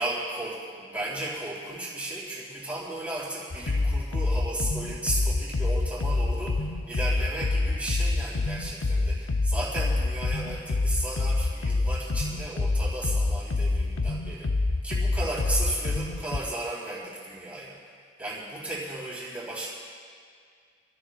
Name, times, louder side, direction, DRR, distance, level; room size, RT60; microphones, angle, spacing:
voice 1, 0.0-17.8 18.2-19.7, right 1 dB, 5° right, -7 dB, 3.3 m, -34 dB
sound 1, 3.5-16.4, left 2 dB, 85° left, 0.6 m, -27 dB
27.0 x 16.5 x 2.3 m, 2.1 s
head